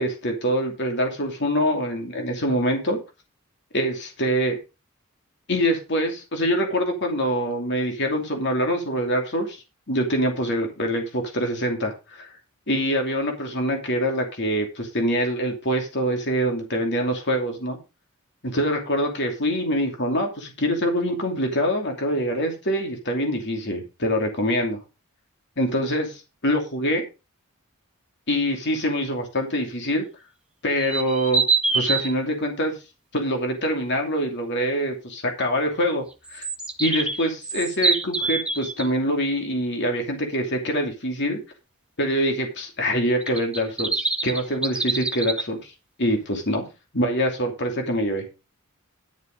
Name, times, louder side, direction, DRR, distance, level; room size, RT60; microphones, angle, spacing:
voice 1, 0.0-3.0 3.7-4.6 5.5-12.3 12.7-17.8 18.4-24.8 25.6-27.0 28.3-30.0 30.6-31.4 31.7-32.7 33.1-36.0 36.3-36.4 36.8-41.4 42.0-45.7 46.0-46.6 46.9-48.2, equal, 55° left, 3 dB, 2.7 m, -25 dB
sound 1, 30.8-32.1 36.3-38.9 43.2-45.4, right 4 dB, 5° right, 1.6 m, -25 dB
11.5 x 7.0 x 5.2 m, 0.29 s
head